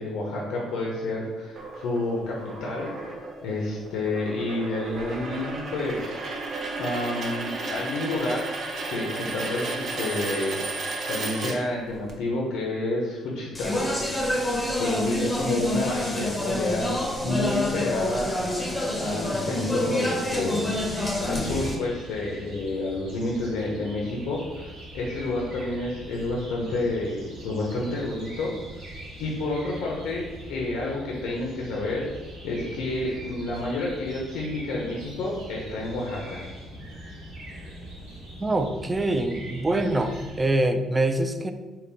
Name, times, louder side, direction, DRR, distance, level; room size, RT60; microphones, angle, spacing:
voice 1, 0.0-2.9 3.4-6.3 6.8-8.4 8.9-10.6 11.1-13.9 14.8-17.0 17.2-20.7 21.3-28.5 29.2-32.1 32.4-36.4, left 2 dB, 85° left, -2 dB, 0.6 m, -29 dB
sound 1, 1.6-12.1, right 2 dB, 50° right, 0.6 m, -34 dB
Speech, 13.5-21.7, left 1 dB, 15° left, 0.6 m, -27 dB
sound 2, 20.5-40.5, equal, 85° right, 1.1 m, -42 dB
voice 2, 38.4-41.5, right 2 dB, 20° right, 7 dB, 0.3 m, -24 dB
3.8 x 2.2 x 3.9 m, 1.2 s
cardioid pair, 105°, 0 cm